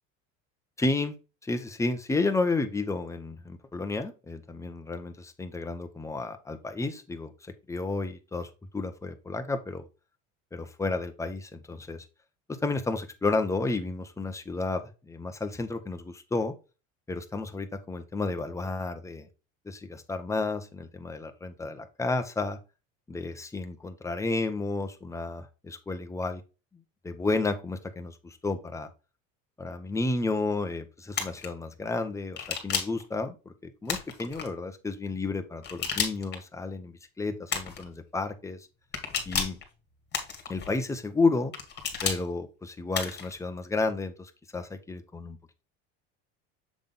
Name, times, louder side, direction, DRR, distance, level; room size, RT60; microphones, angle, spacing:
voice 1, 0.8-1.1 1.4-7.3 7.7-9.9 10.5-12.0 12.5-16.5 17.1-19.3 19.7-22.6 23.1-26.4 27.0-28.9 29.6-38.7 39.3-39.6 40.5-41.5 42.0-45.4, left 3 dB, 10° left, 7 dB, 0.9 m, -31 dB
sound 1, 31.1-31.5 32.4-33.0 33.9-34.5 35.6-36.4 37.5-37.9 38.9-39.6 40.1-40.7 41.5-42.2 42.9-43.3, left 6 dB, 35° left, 1.7 m, -32 dB
7.3 x 3.5 x 3.7 m, 0.30 s
supercardioid pair, 115°, 30 cm